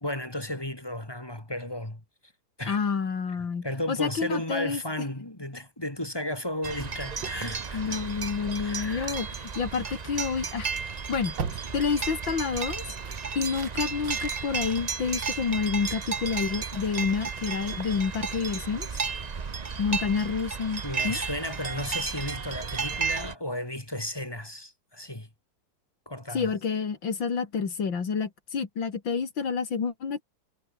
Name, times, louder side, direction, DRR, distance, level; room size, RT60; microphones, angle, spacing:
voice 1, 0.0-2.0 2.6-2.8 3.6-8.0 8.6-9.2 20.8-25.3 26.1-26.5, left 1 dB, 10° left, 2.8 m, -34 dB
voice 2, 2.7-4.8 7.7-10.7 11.1-11.3 11.7-12.8 13.3-18.9 19.8-21.2 26.3-30.2, left 5 dB, 80° left, 3.3 m, -29 dB
sound 1, 6.6-23.3, right 5 dB, 40° right, 0.6 m, -33 dB
sound 2, 7.2-15.6, right 6 dB, 75° right, 2.7 m, -43 dB
omnidirectional pair, 2.0 m